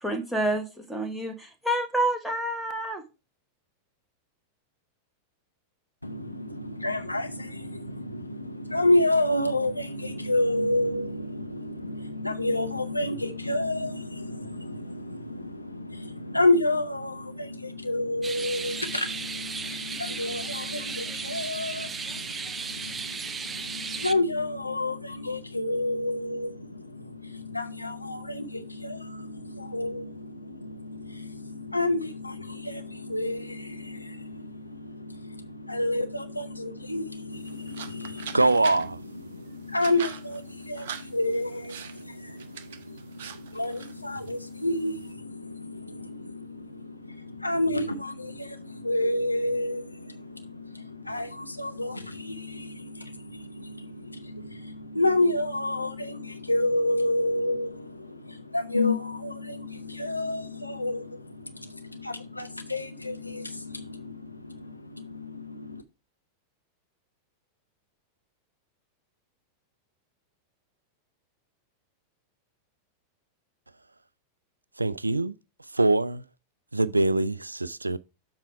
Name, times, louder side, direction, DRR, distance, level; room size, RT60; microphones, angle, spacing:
voice 1, 0.0-3.0, right 1 dB, ahead, 1.3 m, -28 dB
voice 2, 6.0-65.8, left 2 dB, 85° left, 0.7 m, -30 dB
sound 1, 18.2-24.1, right 5 dB, 20° right, 0.5 m, -35 dB
sound 2, 37.3-45.1, right 8 dB, 60° right, 0.8 m, -44 dB
voice 3, 38.3-39.0 74.8-75.3 75.7-76.2 76.7-78.0, right 2 dB, 80° right, 0.4 m, -23 dB
7.4 x 4.8 x 4.7 m
figure-of-eight pair, 90°, 0 cm